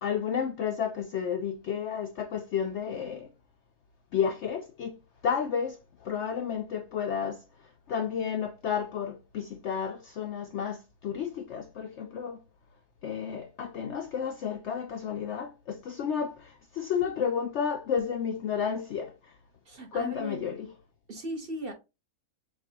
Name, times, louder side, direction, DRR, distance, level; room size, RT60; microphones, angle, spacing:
voice 1, 0.0-3.3 4.1-5.0 5.2-7.4 7.9-12.4 13.0-19.1 19.9-20.6, left 7 dB, 65° left, 0.7 m, -31 dB
voice 2, 19.6-20.4 21.1-21.7, right 1 dB, 40° right, 1.1 m, -37 dB
6.3 x 2.4 x 2.8 m
omnidirectional pair, 1.6 m